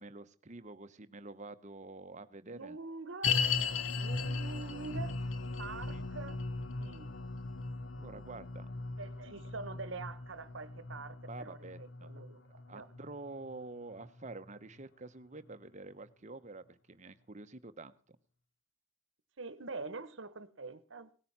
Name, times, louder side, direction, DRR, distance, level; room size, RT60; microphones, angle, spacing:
voice 1, 0.0-2.8 5.9-6.1 8.0-8.7 11.3-12.1 12.7-17.9, right 3 dB, 35° right, 11 dB, 0.8 m, -48 dB
voice 2, 2.5-3.5 3.9-5.2 5.6-6.4 6.8-7.2 9.0-12.9 19.4-21.1, right 4 dB, 60° right, 14 dB, 1.1 m, -45 dB
sound 1, 3.2-14.5 14.8-14.9 15.5-15.6, left 4 dB, 65° left, 0.8 m, -37 dB
18.0 x 9.7 x 5.9 m, 0.40 s
head